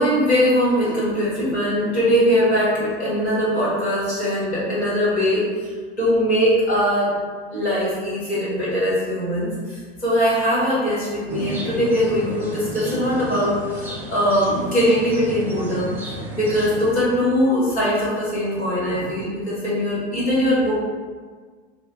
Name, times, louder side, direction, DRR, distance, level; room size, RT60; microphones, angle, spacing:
voice 1, 0.0-7.1 7.5-15.9 16.3-20.7, equal, 90° left, -9 dB, 1.5 m, -21 dB
sound 1, 11.3-16.9, right 1 dB, 5° right, 0.3 m, -33 dB
2.5 x 2.2 x 3.8 m, 1.6 s
hypercardioid pair, 90°, 32 cm